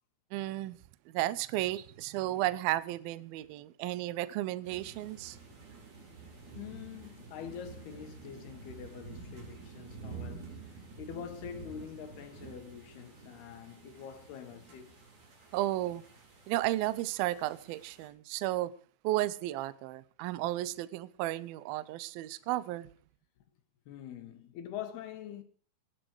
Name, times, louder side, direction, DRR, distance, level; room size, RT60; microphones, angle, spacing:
voice 1, 0.3-0.8 1.1-5.4 15.5-16.0 16.5-18.7 19.0-22.9, right 16 dB, 80° right, 2.1 m, -33 dB
sound 1, 4.6-18.1, right 4 dB, 45° right, 5.6 m, -49 dB
voice 2, 6.6-10.6 11.0-14.9 23.9-25.4, left 9 dB, 65° left, 3.2 m, -45 dB
19.0 x 10.5 x 4.8 m
omnidirectional pair, 5.2 m